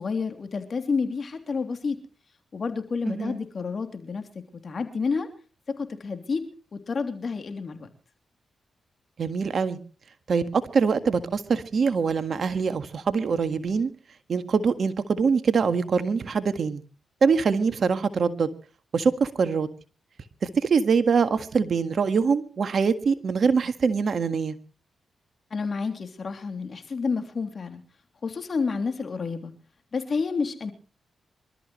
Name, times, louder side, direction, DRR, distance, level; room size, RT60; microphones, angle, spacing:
voice 1, 0.0-2.0 2.5-5.3 5.7-7.9 25.5-27.8 28.2-29.5 29.9-30.7, left 4 dB, 55° left, 7 dB, 3.1 m, -30 dB
voice 2, 3.0-3.4 9.2-9.8 10.3-13.9 14.3-16.8 17.2-18.5 18.9-19.7 20.4-24.6, right 5 dB, 60° right, 10 dB, 1.7 m, -24 dB
25.5 x 13.0 x 3.2 m, 0.38 s
supercardioid pair, 55°, 0 cm